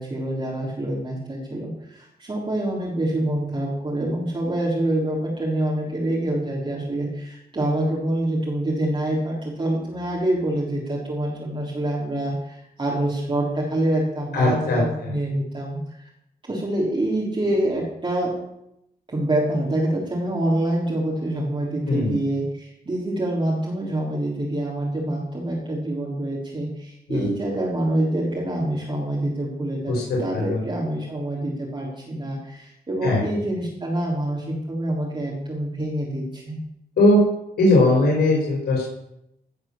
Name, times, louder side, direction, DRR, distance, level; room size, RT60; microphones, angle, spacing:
voice 1, 0.0-16.1 16.4-18.3 19.1-29.9 30.2-36.6, right 1 dB, 30° right, -5 dB, 3.6 m, -26 dB
voice 2, 14.3-15.1 21.8-22.2 27.1-27.3 29.9-30.6 33.0-33.2 37.0-37.2 37.6-38.8, left 2 dB, 80° left, -3 dB, 4.7 m, -19 dB
16.0 x 6.0 x 7.3 m, 0.81 s
cardioid pair, 85°, 16 cm